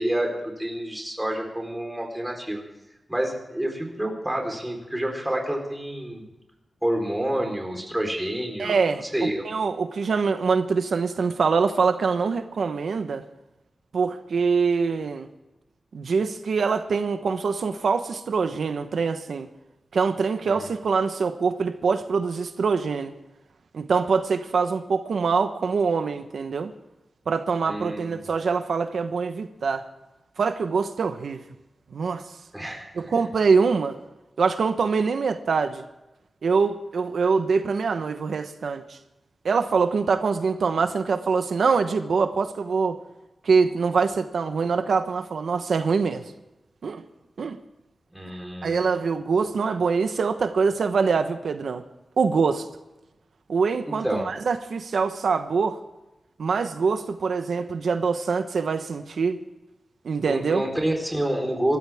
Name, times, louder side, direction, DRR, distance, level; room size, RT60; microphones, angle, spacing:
voice 1, 0.0-2.6 3.1-6.2 6.8-8.8 9.1-9.4 20.5-20.7 27.7-28.2 32.5-33.1 48.1-48.9 53.9-54.3 60.3-61.8, right 1 dB, 10° right, 1 dB, 4.0 m, -28 dB
voice 2, 8.6-9.0 9.4-13.2 13.9-15.3 15.9-19.5 19.9-23.1 23.7-26.7 27.3-29.8 30.4-31.4 31.9-32.2 32.9-34.0 34.4-35.8 36.4-39.0 39.4-43.0 43.4-46.2 46.8-47.0 47.4-47.6 48.3-48.4 48.6-51.8 52.2-52.7 53.5-55.8 56.4-59.4 60.0-60.6, right 5 dB, 85° right, 8 dB, 1.0 m, -24 dB
26.0 x 14.0 x 3.6 m, 0.99 s
wide cardioid pair, 155°, 0 cm